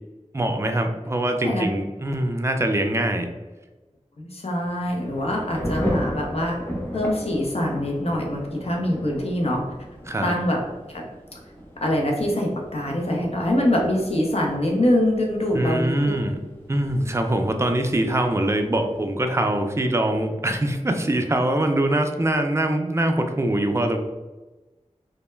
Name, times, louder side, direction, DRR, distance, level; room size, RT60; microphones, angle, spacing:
voice 1, 0.3-3.3 10.1-10.4 15.5-16.4 16.7-24.0, right 1 dB, 20° right, 5 dB, 0.3 m, -23 dB
voice 2, 4.2-6.6 6.9-9.6 10.2-10.6 10.9-11.1 11.8-16.2, left 1 dB, 55° left, -1 dB, 0.6 m, -24 dB
Thunder / Rain, 4.7-19.1, equal, 15° left, 0.7 m, -36 dB
2.2 x 2.1 x 3.1 m, 1.2 s
wide cardioid pair, 45°, 12 cm